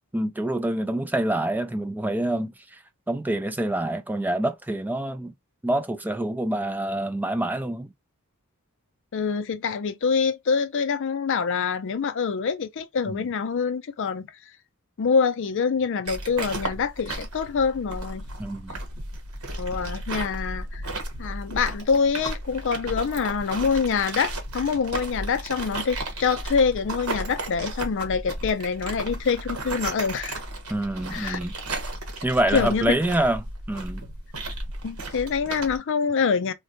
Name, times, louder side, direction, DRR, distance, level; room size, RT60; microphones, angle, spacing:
voice 1, 0.1-2.5 3.1-5.3 5.6-7.9 13.1-13.3 18.4-18.8 30.7-31.5 32.2-34.1, right 1 dB, 10° right, 0.3 m, -26 dB
voice 2, 9.1-14.3 15.0-18.2 19.6-20.8 21.2-30.4 31.1-31.4 32.5-32.9 34.8-36.5, left 5 dB, 60° left, 0.4 m, -25 dB
sound 1, 16.0-35.8, right 2 dB, 85° right, 1.1 m, -34 dB
3.9 x 2.2 x 2.6 m
head